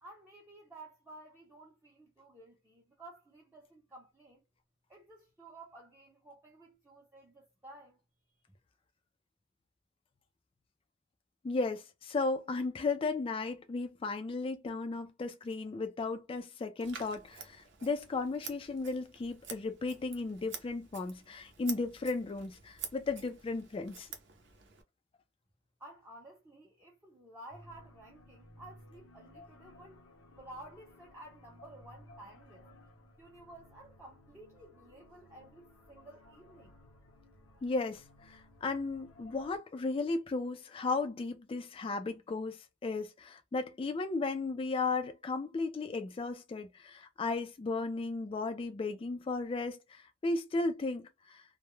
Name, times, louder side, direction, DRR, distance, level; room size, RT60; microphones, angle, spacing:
voice 1, 0.0-4.4 4.9-8.0 25.8-30.0 30.4-32.7 33.2-36.7, right 1 dB, 10° right, 0.6 m, -53 dB
voice 2, 11.4-24.1 37.6-51.4, left 3 dB, 25° left, 0.3 m, -35 dB
Scissors, 16.8-24.8, right 7 dB, 65° right, 0.6 m, -48 dB
sound 1, 27.5-39.6, left 1 dB, 80° left, 0.7 m, -58 dB
2.2 x 2.1 x 3.0 m
head